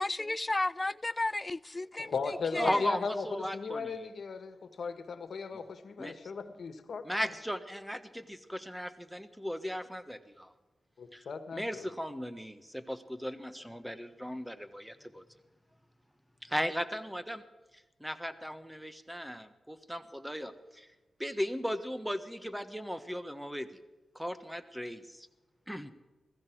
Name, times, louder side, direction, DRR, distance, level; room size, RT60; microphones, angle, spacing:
voice 1, 0.0-2.1 2.5-2.8, left 2 dB, 25° left, 0.4 m, -33 dB
voice 2, 2.0-7.1 11.0-11.9, left 5 dB, 70° left, 1.6 m, -37 dB
voice 3, 2.6-4.0 6.0-6.1 7.0-10.5 11.1-11.2 11.5-15.2 16.4-17.4 18.0-20.9 21.2-23.7 24.1-25.3 25.7-25.9, equal, ahead, 1.3 m, -36 dB
16.0 x 15.0 x 4.7 m
cardioid pair, 65°, 0 cm